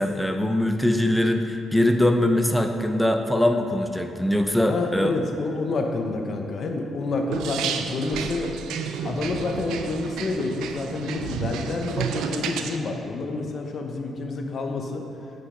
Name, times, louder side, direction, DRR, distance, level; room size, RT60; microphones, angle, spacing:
voice 1, 0.0-5.1, left 1 dB, 5° left, 5 dB, 0.6 m, -22 dB
voice 2, 4.7-8.5 9.0-15.0, left 3 dB, 50° left, 3 dB, 0.9 m, -28 dB
sound 1, 7.3-12.8, right 7 dB, 85° right, 0.5 m, -31 dB
8.3 x 5.2 x 5.1 m, 2.9 s
cardioid pair, 90°, 0 cm